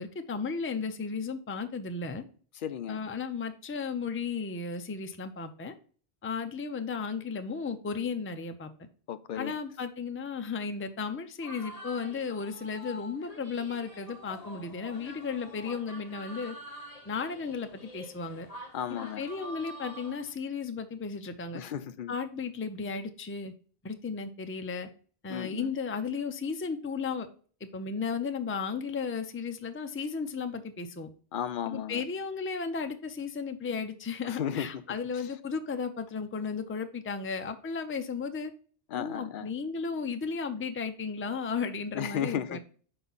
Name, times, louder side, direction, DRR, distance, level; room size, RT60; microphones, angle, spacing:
voice 1, 0.0-2.2 2.9-5.7 6.2-8.7 9.3-16.6 17.1-18.5 18.9-21.6 22.1-23.5 23.8-24.9 25.2-27.3 27.7-31.1 31.6-38.5 38.9-42.6, left 5 dB, 20° left, 0.4 m, -34 dB
voice 2, 2.6-3.0 9.1-9.6 18.7-19.2 21.5-22.1 25.3-25.7 31.3-32.0 34.2-34.7 38.9-39.5 41.9-42.6, left 9 dB, 60° left, 0.7 m, -34 dB
sound 1, 11.4-20.3, equal, 35° left, 1.3 m, -46 dB
5.7 x 4.7 x 4.0 m
omnidirectional pair, 1.1 m